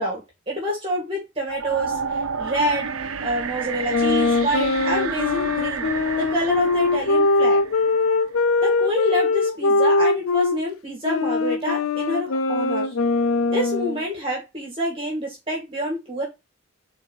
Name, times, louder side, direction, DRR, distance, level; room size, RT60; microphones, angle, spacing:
voice 1, 0.0-5.9 6.2-7.6 8.6-12.9 13.5-16.3, equal, 25° right, -1 dB, 2.3 m, -27 dB
sound 1, 1.5-8.6, right 5 dB, 90° right, 0.8 m, -31 dB
sound 2, 3.9-10.6 11.0-14.0, left 3 dB, 85° left, 0.6 m, -21 dB
4.6 x 4.3 x 5.5 m, 0.22 s
head